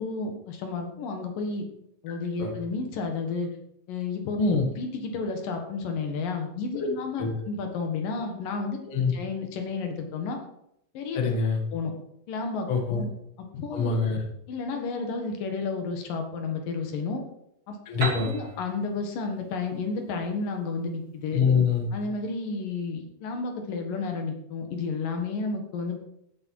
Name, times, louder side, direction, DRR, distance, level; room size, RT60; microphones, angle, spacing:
voice 1, 0.0-1.7 2.0-3.5 3.9-4.4 4.8-8.8 9.1-10.4 10.9-11.2 11.7-11.9 12.3-13.1 13.5-14.1 14.5-17.2 17.7-17.8 18.2-21.4 21.9-26.0, left 4 dB, 80° left, 4 dB, 3.3 m, -31 dB
voice 2, 11.1-11.6 12.7-13.0 13.7-14.2 17.9-18.3 21.3-21.9, left 5 dB, 45° left, 3 dB, 2.3 m, -24 dB
Piano, 18.0-21.7, right 2 dB, 35° right, 3.1 m, -37 dB
14.0 x 9.6 x 4.7 m, 0.79 s
omnidirectional pair, 3.9 m